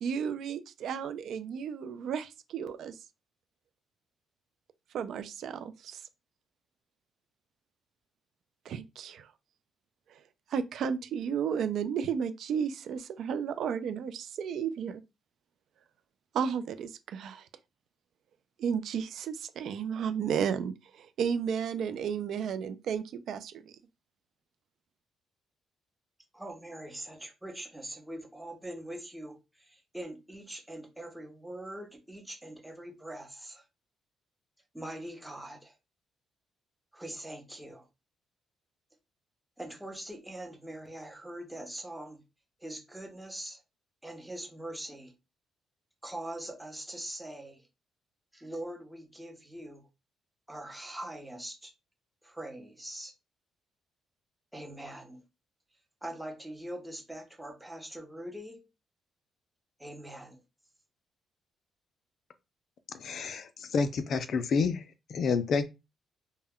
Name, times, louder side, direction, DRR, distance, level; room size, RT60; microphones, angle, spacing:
voice 1, 0.0-2.9 4.9-6.0 8.7-9.3 10.5-15.0 16.3-17.5 18.6-23.6, right 7 dB, 70° right, 0.3 m, -33 dB
voice 2, 26.3-33.6 34.7-35.7 36.9-37.9 39.6-42.2 42.6-43.6 44.0-45.1 46.0-47.7 48.3-49.9 50.5-51.7 52.2-53.1 54.5-55.2 56.0-58.7 59.8-60.4, right 1 dB, 5° right, 0.7 m, -42 dB
voice 3, 62.9-64.8 65.1-65.6, left 5 dB, 60° left, 0.4 m, -29 dB
2.2 x 2.1 x 3.5 m
cardioid pair, 90°, 0 cm